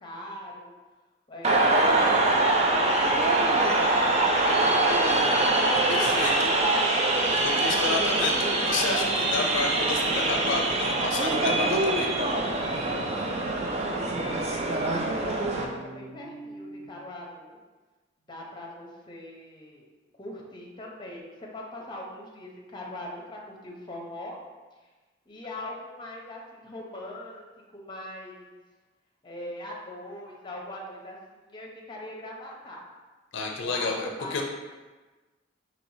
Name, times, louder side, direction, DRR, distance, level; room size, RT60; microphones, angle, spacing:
voice 1, 0.0-0.7 1.3-4.0 13.8-17.6 18.3-19.9 20.2-24.4 25.3-27.4 27.7-28.6 29.2-32.8 33.6-34.3, left 1 dB, 25° left, -2 dB, 0.7 m, -41 dB
sound 1, 1.4-15.6, right 2 dB, 35° right, 0.4 m, -24 dB
voice 2, 5.0-12.1 33.3-34.4, left 3 dB, 75° left, 2 dB, 0.4 m, -31 dB
sound 2, 9.9-10.7 11.8-16.9, equal, 50° right, 0.8 m, -43 dB
4.7 x 3.1 x 2.7 m, 1.3 s
head